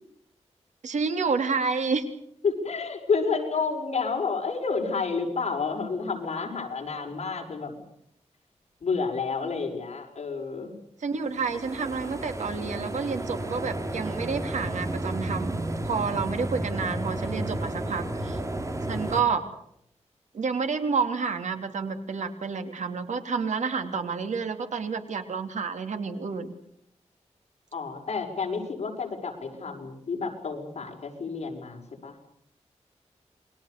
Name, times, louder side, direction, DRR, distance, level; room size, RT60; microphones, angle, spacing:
voice 1, 0.8-2.0 11.0-18.4 18.9-19.4 20.3-26.5, right 5 dB, 90° right, 7 dB, 3.1 m, -29 dB
voice 2, 2.4-7.7 8.8-10.7 27.7-32.1, left 4 dB, 65° left, 2 dB, 6.3 m, -30 dB
sound 1, 11.2-19.2, right 1 dB, 25° right, 3.0 m, -32 dB
28.5 x 22.0 x 6.8 m, 0.72 s
wide cardioid pair, 165°, 12 cm